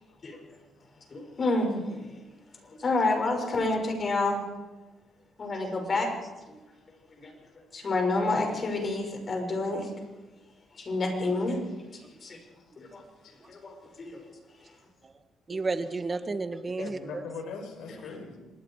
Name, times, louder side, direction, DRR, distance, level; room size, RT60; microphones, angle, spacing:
voice 1, 0.1-1.1 12.3-12.4 13.2-13.5 16.8-18.4, left 4 dB, 80° left, 5 dB, 4.9 m, -42 dB
voice 2, 1.1-2.0 2.6-4.4 5.4-6.1 6.5-6.6 7.2-7.3 7.7-9.9 10.7-11.6 11.9-12.4 12.8-13.0 13.5-14.2, left 2 dB, 40° left, 3 dB, 6.7 m, -29 dB
voice 3, 15.5-17.2, right 3 dB, 30° right, 9 dB, 1.8 m, -32 dB
26.5 x 20.0 x 5.0 m, 1.1 s
cardioid pair, 90°, 0 cm